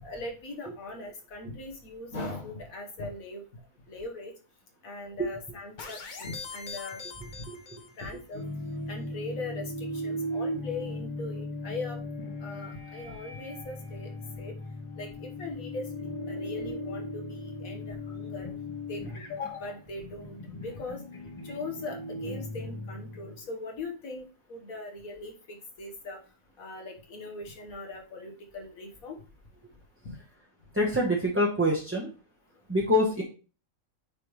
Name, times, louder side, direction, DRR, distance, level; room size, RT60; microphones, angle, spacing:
voice 1, 0.0-3.5 3.9-4.3 4.8-7.0 8.0-8.4 8.9-12.1 12.4-14.6 15.0-18.5 18.9-21.0 21.4-26.2 26.6-29.2 30.0-30.2, left 3 dB, 80° left, 2 dB, 1.8 m, -40 dB
sound 1, 5.8-8.2, left 5 dB, 45° left, 0.8 m, -42 dB
sound 2, 8.3-23.5, left 1 dB, 25° left, 1.0 m, -38 dB
voice 2, 30.7-32.1 32.7-33.2, left 1 dB, 10° right, -2 dB, 0.8 m, -25 dB
9.0 x 3.4 x 3.2 m, 0.35 s
omnidirectional pair, 1.4 m